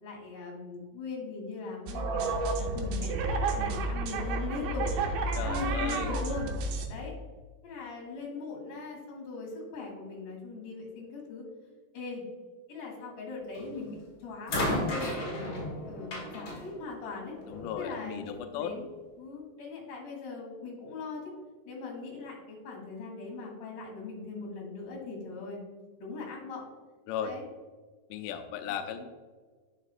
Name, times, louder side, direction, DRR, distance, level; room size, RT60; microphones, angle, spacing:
voice 1, 0.0-2.3 2.6-3.1 3.5-4.9 5.4-6.5 6.9-7.2 7.6-11.4 11.9-12.2 12.7-17.3 17.8-18.8 19.2-21.3 21.6-25.6 26.0-26.6 27.2-27.5 28.7-28.8, left 4 dB, 65° left, -2 dB, 3.4 m, -40 dB
sound 1, 1.9-6.9, right 3 dB, 80° right, 2.5 m, -31 dB
voice 2, 5.4-6.1 17.5-18.7 27.1-27.3 28.1-29.1, left 8 dB, 85° left, 6 dB, 1.9 m, -36 dB
sound 2, 13.5-13.9 14.5-17.7 18.8-18.9, left 1 dB, 45° left, 2.0 m, -34 dB
9.7 x 5.6 x 2.5 m, 1.5 s
omnidirectional pair, 4.2 m